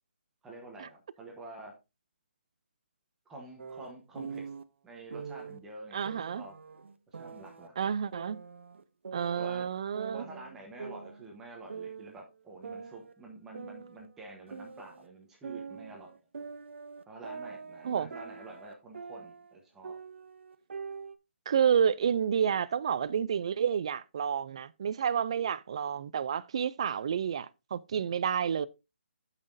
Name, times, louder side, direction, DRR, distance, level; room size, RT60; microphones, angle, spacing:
voice 1, 0.4-1.7 3.3-4.4 4.8-6.5 7.1-7.9 9.3-9.6 10.1-16.1 17.1-20.0, right 2 dB, 5° right, 0.9 m, -48 dB
sound 1, 3.6-4.6 5.1-5.6 6.1-7.7 8.1-9.7 9.9-11.4 11.7-12.2 12.6-15.1 15.4-19.5 19.8-21.2, right 5 dB, 65° right, 0.7 m, -44 dB
voice 2, 5.9-6.4 7.8-8.4 9.1-10.2 17.8-18.1 21.5-28.7, right 8 dB, 25° right, 0.3 m, -29 dB
13.0 x 5.6 x 2.6 m
hypercardioid pair, 175°, 7 cm